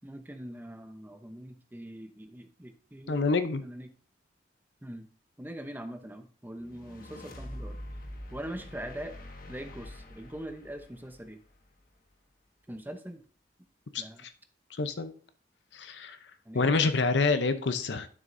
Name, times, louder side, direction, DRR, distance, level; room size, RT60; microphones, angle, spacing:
voice 1, 0.0-3.3 3.6-3.9 4.8-5.1 5.4-7.8 8.3-9.1 9.5-11.4 12.7-13.2 14.0-14.2 16.5-16.9, right 1 dB, 10° right, 6 dB, 0.8 m, -42 dB
voice 2, 3.1-3.6 13.9-14.3 14.7-15.1 15.7-16.2 16.5-18.1, left 3 dB, 75° left, 11 dB, 0.7 m, -27 dB
sound 1, 6.6-11.9, left 1 dB, 55° left, 1.2 m, -45 dB
10.5 x 6.2 x 2.6 m, 0.42 s
head